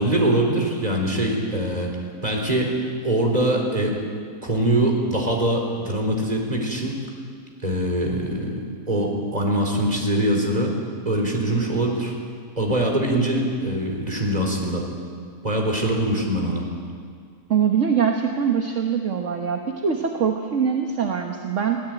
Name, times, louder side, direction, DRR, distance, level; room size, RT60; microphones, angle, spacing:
voice 1, 0.0-1.9 2.2-2.8 3.0-4.0 4.4-7.0 7.6-10.7 11.1-12.1 12.6-14.8 15.4-16.6, right 1 dB, 25° right, 1 dB, 4.0 m, -23 dB
voice 2, 17.5-21.8, right 7 dB, 55° right, 3 dB, 1.6 m, -23 dB
22.0 x 17.0 x 9.1 m, 2.1 s
omnidirectional pair, 1.5 m